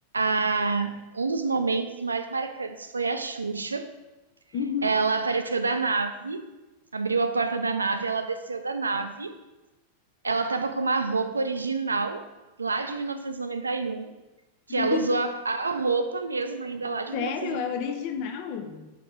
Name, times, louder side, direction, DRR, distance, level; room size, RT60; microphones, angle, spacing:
voice 1, 0.1-3.9 4.8-6.5 6.9-9.4 10.2-12.2 12.6-14.1 14.7-17.6, right 4 dB, 80° right, 8 dB, 0.4 m, -27 dB
voice 2, 4.5-4.9 14.8-15.2 17.1-18.9, left 6 dB, 45° left, 6 dB, 0.6 m, -30 dB
5.0 x 4.2 x 4.5 m, 1.1 s
figure-of-eight pair, 90°, 0 cm